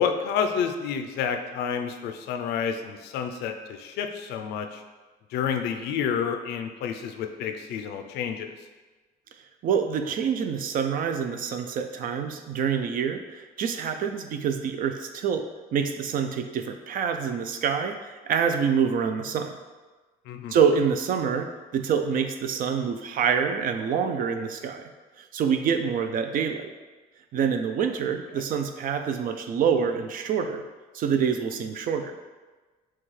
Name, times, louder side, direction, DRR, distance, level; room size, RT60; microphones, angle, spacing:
voice 1, 0.0-4.8 5.3-8.5 20.3-20.6 28.3-28.4, left 7 dB, 80° left, 6 dB, 0.4 m, -29 dB
voice 2, 9.6-15.4 15.7-19.5 20.5-24.8 25.3-26.7 27.3-30.6 30.9-32.1, right 7 dB, 55° right, 7 dB, 0.5 m, -26 dB
6.1 x 2.3 x 3.2 m, 1.3 s
cardioid pair, 110°, 17 cm